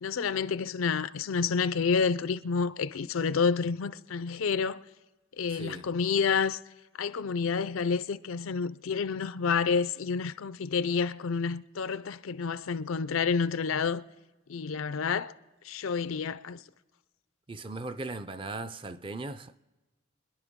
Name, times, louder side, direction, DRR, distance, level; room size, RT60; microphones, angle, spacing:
voice 1, 0.0-4.8 5.4-6.6 7.0-14.0 14.5-15.3 15.6-16.6, left 5 dB, 85° left, 0.5 m, -29 dB
voice 2, 5.5-5.9 17.5-19.6, right 2 dB, 25° right, 0.4 m, -38 dB
26.5 x 10.5 x 3.6 m
head